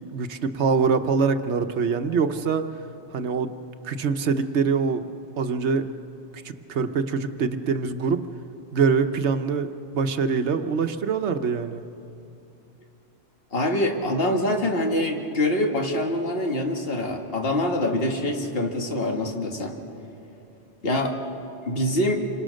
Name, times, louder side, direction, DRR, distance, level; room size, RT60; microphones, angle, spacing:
voice 1, 0.1-2.7 3.1-3.5 3.8-5.1 5.4-5.9 6.4-8.2 8.7-11.8, right 5 dB, 90° right, 8 dB, 1.2 m, -24 dB
voice 2, 13.5-19.7 20.8-21.2 21.7-22.2, left 1 dB, 60° left, 2 dB, 2.1 m, -25 dB
28.0 x 25.5 x 6.4 m, 2.9 s
omnidirectional pair, 1.1 m